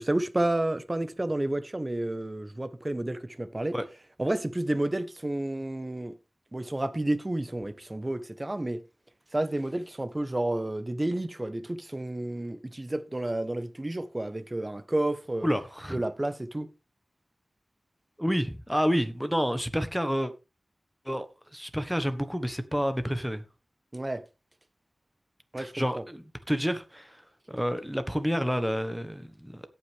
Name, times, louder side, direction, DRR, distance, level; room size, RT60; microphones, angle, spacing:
voice 1, 0.0-3.7 4.2-6.1 6.5-8.8 9.3-15.5 15.9-16.7 23.9-24.2 25.5-26.0, right 1 dB, 25° right, 1.1 m, -30 dB
voice 2, 15.4-16.0 18.2-20.3 21.0-21.3 21.5-23.4 25.5-29.7, equal, 5° right, 1.4 m, -29 dB
17.5 x 5.9 x 3.5 m
wide cardioid pair, 65°, 0 cm